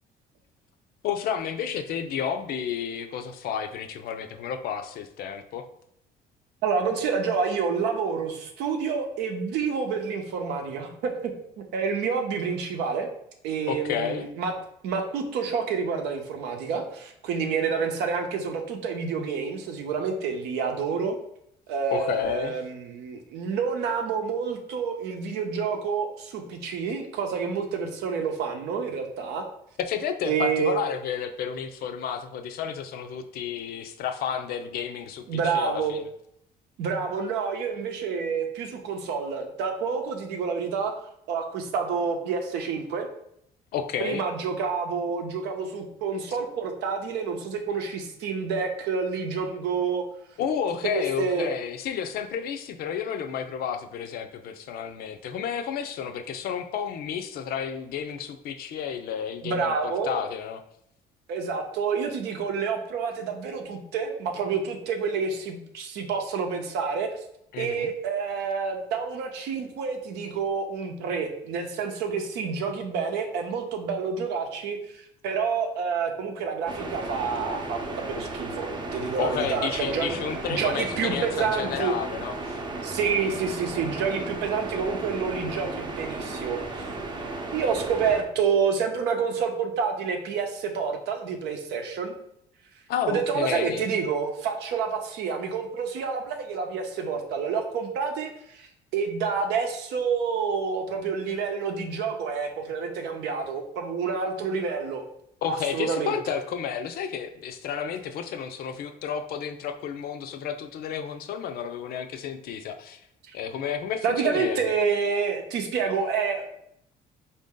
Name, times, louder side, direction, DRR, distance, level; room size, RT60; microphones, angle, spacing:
voice 1, 1.0-5.7 13.7-14.2 21.9-22.6 29.8-36.1 43.7-44.2 50.4-60.6 67.5-67.9 79.2-82.6 92.9-93.8 105.4-113.0 113.3-114.7, left 8 dB, 65° left, 7 dB, 0.5 m, -31 dB
voice 2, 6.6-13.1 13.4-14.5 14.8-21.2 21.7-29.4 30.2-30.8 35.3-36.0 36.8-40.9 41.3-43.1 44.0-50.0 50.8-51.5 59.4-60.2 61.3-67.1 67.6-80.1 80.5-81.9 82.8-86.9 87.5-92.1 93.1-105.0 105.5-106.4 113.3-113.4 114.0-116.5, right 5 dB, 85° right, 4 dB, 0.7 m, -28 dB
sound 1, 76.7-88.2, right 2 dB, 25° right, 0.6 m, -35 dB
4.2 x 2.6 x 3.6 m, 0.74 s
cardioid pair, 110°, 17 cm